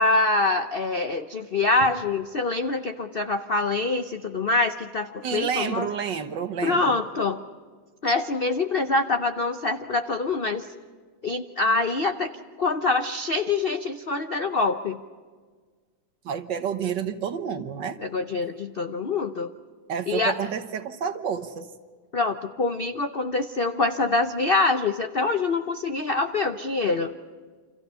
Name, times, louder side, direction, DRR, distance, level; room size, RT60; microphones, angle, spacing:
voice 1, 0.0-5.9 6.6-7.4 8.0-10.7 11.2-12.3 12.6-15.0 18.0-19.5 20.1-20.3 22.1-27.1, left 3 dB, 85° left, 7 dB, 0.5 m, -25 dB
voice 2, 5.2-7.0 16.3-18.0 19.9-21.7, right 7 dB, 60° right, 9 dB, 1.7 m, -29 dB
29.0 x 27.0 x 5.6 m, 1.5 s
omnidirectional pair, 2.3 m